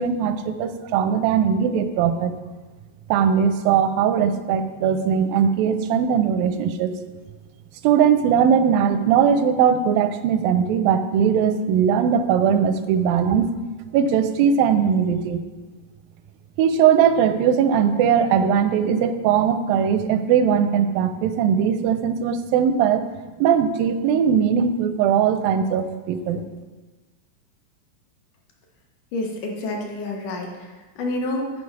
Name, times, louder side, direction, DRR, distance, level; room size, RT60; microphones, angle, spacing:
voice 1, 0.0-2.4 3.1-7.0 7.8-13.5 13.9-15.4 16.6-23.1 23.4-26.4, right 7 dB, 85° right, 10 dB, 2.3 m, -20 dB
voice 2, 29.1-30.7 31.0-31.5, left 2 dB, 70° left, 1 dB, 2.3 m, -28 dB
9.4 x 5.2 x 4.7 m, 1.3 s
omnidirectional pair, 4.0 m